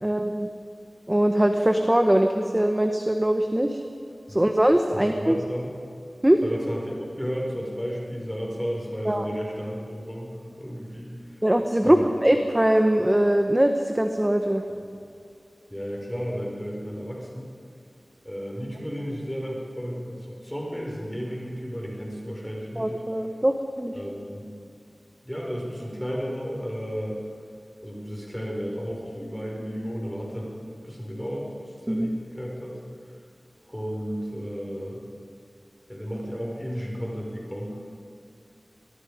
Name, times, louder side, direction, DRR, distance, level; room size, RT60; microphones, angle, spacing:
voice 1, 0.0-0.5 1.1-3.8 4.3-5.4 6.2-6.4 9.1-9.3 11.4-14.6 22.8-23.9 31.9-32.2, right 1 dB, 15° right, 5 dB, 1.2 m, -22 dB
voice 2, 4.9-5.7 6.4-11.4 11.8-12.1 14.7-14.8 15.7-17.5 18.2-22.9 23.9-24.5 25.2-27.2 27.8-30.5 30.8-32.8 33.7-35.0 35.9-37.8, equal, 5° left, -2 dB, 5.5 m, -33 dB
25.0 x 21.0 x 5.2 m, 2.4 s
wide cardioid pair, 65°, 0 cm